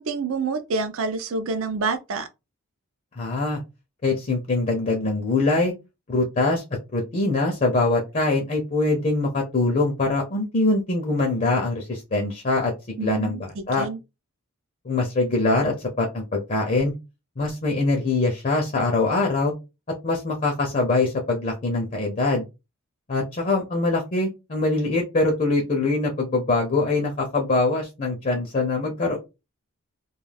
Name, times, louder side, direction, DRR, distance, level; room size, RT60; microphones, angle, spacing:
voice 1, 0.0-2.3 13.0-13.4 13.8-14.0, right 4 dB, 65° right, 0.4 m, -27 dB
voice 2, 3.1-3.6 4.0-5.7 6.1-6.6 6.9-13.9 14.9-16.9 17.4-19.5 20.0-22.4 23.1-29.2, left 2 dB, 35° left, 0.5 m, -23 dB
2.3 x 2.2 x 3.2 m
head